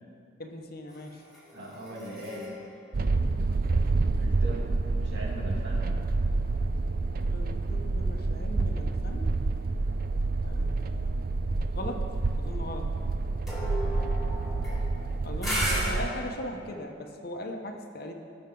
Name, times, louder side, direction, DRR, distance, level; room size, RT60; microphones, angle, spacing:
voice 1, 0.4-1.2 7.3-9.4 10.4-11.3 11.7-12.0 12.4-12.9 15.2-18.1, left 1 dB, 50° left, 3 dB, 1.0 m, -39 dB
sound 1, 0.9-4.4 13.5-16.0, equal, ahead, 2.9 m, -36 dB
voice 2, 1.5-2.5 4.2-4.7 4.9-5.8 15.4-16.7, right 1 dB, 65° right, -4 dB, 2.6 m, -40 dB
sound 2, 2.9-16.1, right 3 dB, 50° right, 0.5 m, -28 dB
19.0 x 6.4 x 3.8 m, 2.5 s
head